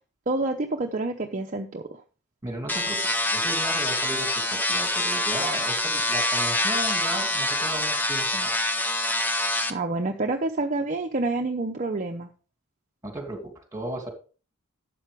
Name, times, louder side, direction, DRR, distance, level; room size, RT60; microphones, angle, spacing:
voice 1, 0.3-2.0 9.7-12.3, right 2 dB, 35° right, 2 dB, 0.8 m, -28 dB
voice 2, 2.4-8.5 13.0-14.1, right 1 dB, 15° right, 4 dB, 2.6 m, -35 dB
sound 1, 2.7-9.7, left 1 dB, 10° left, 0.7 m, -25 dB
12.0 x 7.7 x 3.5 m, 0.36 s
head